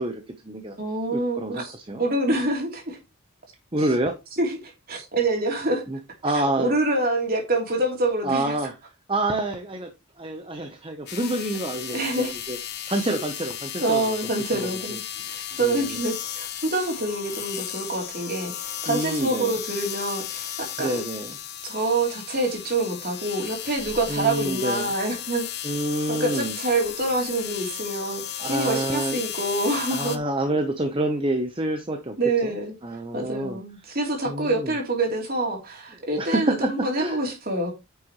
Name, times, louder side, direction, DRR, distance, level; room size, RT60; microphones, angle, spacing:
voice 1, 0.0-0.8 1.1-2.0 3.7-4.1 5.9-6.7 8.2-8.7 9.1-9.9 10.2-12.6 12.9-14.1 14.5-14.7 15.6-16.0 18.9-19.5 20.8-21.4 24.1-24.9 25.6-26.6 28.4-29.2 29.9-32.1 32.4-32.5 32.8-33.6 34.3-34.8 36.2-37.2, right 2 dB, 25° right, 0.9 m, -27 dB
voice 2, 0.8-3.0 3.8-3.9 4.4-5.8 6.6-8.6 11.9-12.3 13.1-13.2 13.8-15.0 15.3-20.5 20.8-21.0 21.7-25.5 26.1-30.2 32.2-32.7 33.1-37.7, right 2 dB, 45° right, 3.3 m, -26 dB
sound 1, 11.1-30.2, left 10 dB, 50° left, 1.1 m, -35 dB
9.6 x 6.9 x 3.1 m
head